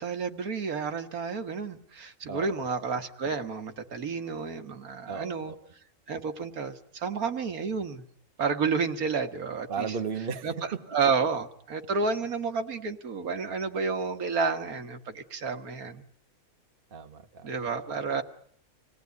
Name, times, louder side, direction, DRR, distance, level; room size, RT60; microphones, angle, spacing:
voice 1, 0.0-5.5 6.1-8.0 8.4-9.9 10.4-16.1 17.4-18.2, right 5 dB, 75° right, 7 dB, 1.9 m, -30 dB
voice 2, 2.3-2.6 5.1-5.6 9.7-10.8 16.9-17.5, right 6 dB, 40° right, 7 dB, 1.4 m, -35 dB
27.5 x 18.5 x 9.4 m, 0.63 s
omnidirectional pair, 1.5 m